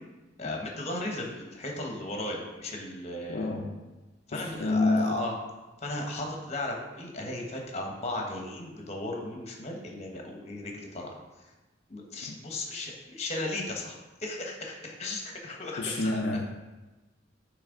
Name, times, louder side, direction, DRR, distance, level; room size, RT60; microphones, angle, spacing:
voice 1, 0.4-3.5 4.3-5.3 5.8-11.2 11.9-13.9 14.2-16.1, left 2 dB, 35° left, 1 dB, 1.0 m, -35 dB
voice 2, 3.3-3.8 4.3-5.3 12.3-12.4 15.8-16.4, left 2 dB, 60° left, -1 dB, 0.5 m, -28 dB
8.7 x 3.3 x 3.7 m, 1.1 s
head